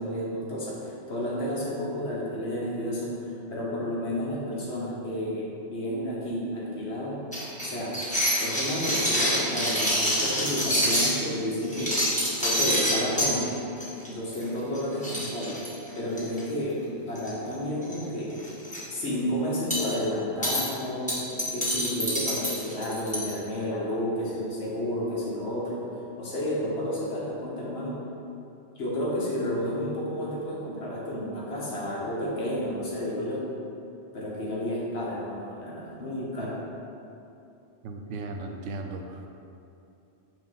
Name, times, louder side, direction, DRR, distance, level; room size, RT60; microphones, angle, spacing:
voice 1, 0.0-7.2 7.6-8.0 8.4-12.0 12.4-13.6 14.1-15.6 15.9-16.8 17.1-18.3 18.9-21.2 21.5-25.8 26.2-28.0 28.8-33.5 34.1-36.6, left 1 dB, 65° left, -5 dB, 1.4 m, -31 dB
sound 1, 7.3-11.1 11.6-13.3 13.8-14.1 14.3-14.5 14.7-14.8 15.0-16.4 17.2-17.5 17.8-18.0 18.4-18.8 19.7-19.9 20.4-20.6 21.1-23.3, equal, 5° left, 1.3 m, -26 dB
voice 2, 37.8-39.3, right 2 dB, 80° right, 3 dB, 0.9 m, -36 dB
6.1 x 2.8 x 5.5 m, 2.7 s
omnidirectional pair, 1.2 m